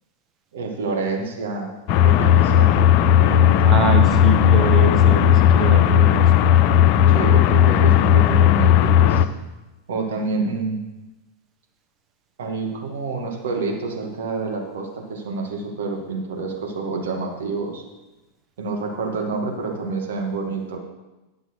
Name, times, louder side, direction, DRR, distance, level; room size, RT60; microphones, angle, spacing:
voice 1, 0.5-1.7 2.0-2.8 3.2-3.9 7.1-9.3 9.9-10.8 12.4-17.8 18.6-20.8, right 3 dB, 60° right, 1 dB, 2.1 m, -28 dB
sound 1, 1.9-9.3, left 10 dB, 40° left, 0.5 m, -15 dB
voice 2, 3.6-6.3, right 4 dB, 25° right, 5 dB, 1.5 m, -24 dB
11.5 x 6.3 x 4.8 m, 1.1 s
figure-of-eight pair, 90°, 0 cm